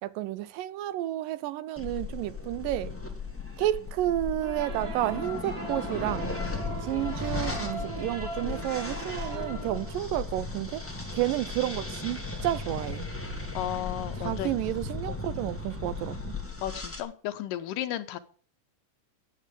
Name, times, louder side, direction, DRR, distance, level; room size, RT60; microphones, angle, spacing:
voice 1, 0.0-2.9 3.6-6.3 6.8-10.8 11.1-13.1 14.3-16.3, right 14 dB, 90° right, 2.5 m, -31 dB
sound 1, 1.8-17.0, left 3 dB, 5° left, 1.0 m, -36 dB
sound 2, 4.4-9.9, right 2 dB, 30° right, 2.1 m, -39 dB
voice 2, 13.5-14.5 15.1-15.2 16.6-18.2, left 12 dB, 90° left, 2.6 m, -34 dB
9.2 x 7.6 x 9.0 m
omnidirectional pair, 3.8 m